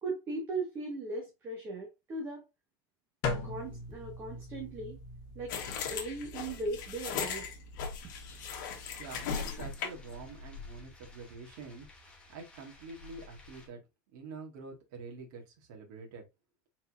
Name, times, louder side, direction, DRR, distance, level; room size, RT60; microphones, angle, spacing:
voice 1, 0.0-2.4 3.4-5.0 5.3-5.6 5.9-7.6, right 2 dB, 20° right, 1.1 m, -38 dB
sound 1, 3.2-9.4, left 3 dB, 35° left, 0.9 m, -42 dB
sound 2, 5.5-10.1, left 6 dB, 70° left, 1.3 m, -38 dB
sound 3, 8.0-13.7, left 3 dB, 10° left, 0.9 m, -53 dB
voice 2, 9.0-11.9 12.3-13.8 14.1-16.2, right 4 dB, 65° right, 1.8 m, -46 dB
4.5 x 4.1 x 2.5 m
supercardioid pair, 180°, 11 cm